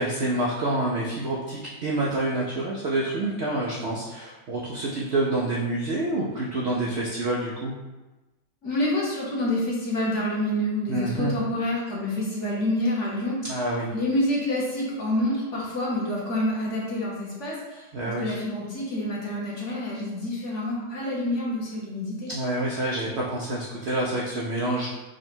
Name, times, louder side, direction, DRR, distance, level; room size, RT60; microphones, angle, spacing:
voice 1, 0.0-7.7 10.9-11.3 13.4-13.9 17.9-18.3 22.3-24.9, right 2 dB, 90° right, -4 dB, 0.5 m, -27 dB
voice 2, 8.6-13.4 13.9-22.3, left 1 dB, 50° left, -4 dB, 1.1 m, -27 dB
5.0 x 2.2 x 4.3 m, 1.1 s
omnidirectional pair, 1.9 m